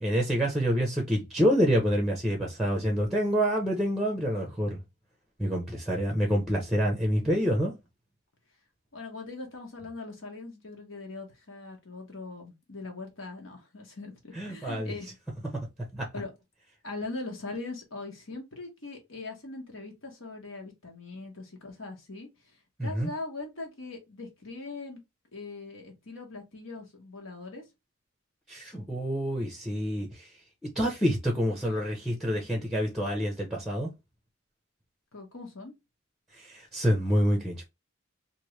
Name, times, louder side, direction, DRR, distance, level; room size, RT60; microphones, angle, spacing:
voice 1, 0.0-4.8 5.4-7.7 14.3-14.9 15.9-16.1 22.8-23.1 28.5-30.3 30.8-33.9 36.4-37.6, equal, ahead, 0.7 m, -27 dB
voice 2, 8.9-15.1 16.1-16.4 16.8-25.0 25.3-27.6 35.1-35.7, left 3 dB, 70° left, 1.2 m, -41 dB
3.1 x 2.6 x 3.1 m
head